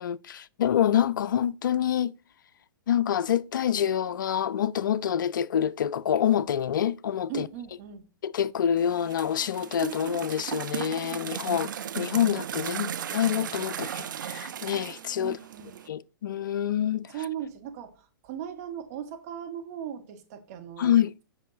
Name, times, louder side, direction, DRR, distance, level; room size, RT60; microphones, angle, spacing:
voice 1, 0.0-2.2 2.9-7.5 8.2-11.7 12.0-15.4 15.9-17.1 20.8-21.1, left 9 dB, 65° left, 0.4 m, -26 dB
voice 2, 7.3-8.0 15.2-15.8 17.1-21.0, right 9 dB, 45° right, 1.4 m, -38 dB
sound 1, 8.8-15.9, right 9 dB, 60° right, 0.5 m, -36 dB
7.8 x 5.5 x 2.7 m
figure-of-eight pair, 115°, 12 cm